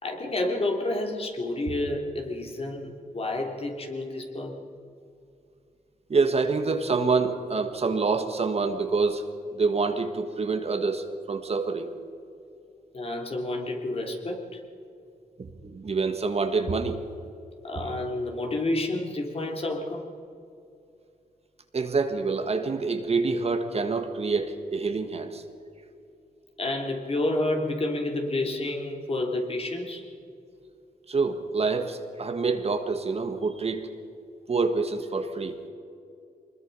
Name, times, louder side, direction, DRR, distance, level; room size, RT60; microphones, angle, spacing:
voice 1, 0.0-4.5 12.9-14.5 17.6-20.1 26.6-30.0, left 2 dB, 40° left, 2 dB, 3.4 m, -29 dB
voice 2, 6.1-11.9 15.4-17.0 21.7-25.4 31.1-33.9 34.5-35.6, right 4 dB, 45° right, 7 dB, 1.7 m, -26 dB
24.0 x 21.0 x 5.6 m, 2.5 s
cardioid pair, 95°, 15 cm